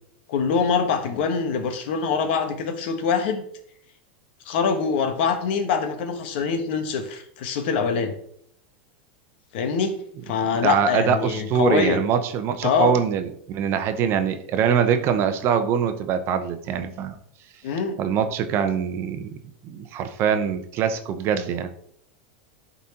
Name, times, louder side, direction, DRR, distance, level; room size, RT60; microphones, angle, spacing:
voice 1, 0.3-3.4 4.5-8.1 9.5-9.9 10.3-12.0 12.6-12.9 17.6-18.0, left 6 dB, 65° left, 7 dB, 1.2 m, -24 dB
voice 2, 10.5-17.2 18.0-19.3 19.6-21.7, right 7 dB, 45° right, 9 dB, 0.8 m, -23 dB
11.0 x 4.1 x 2.9 m, 0.67 s
supercardioid pair, 125°, 6 cm